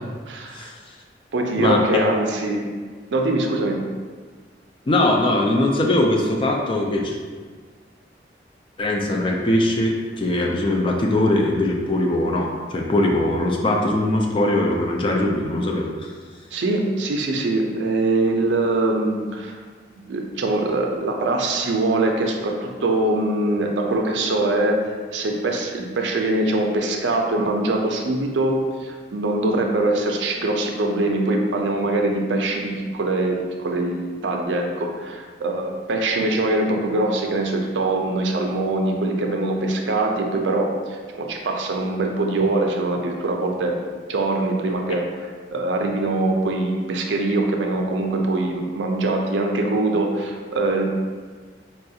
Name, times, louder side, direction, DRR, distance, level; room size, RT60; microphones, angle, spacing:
voice 1, 0.3-0.7 1.3-2.7 3.1-3.8 16.5-19.6 20.1-33.4 33.6-43.7 44.1-50.8, right 2 dB, 85° right, 2 dB, 0.5 m, -23 dB
voice 2, 1.6-2.1 4.9-7.2 8.8-16.1, left 1 dB, 30° left, 0 dB, 0.3 m, -21 dB
4.2 x 2.3 x 2.7 m, 1.5 s
head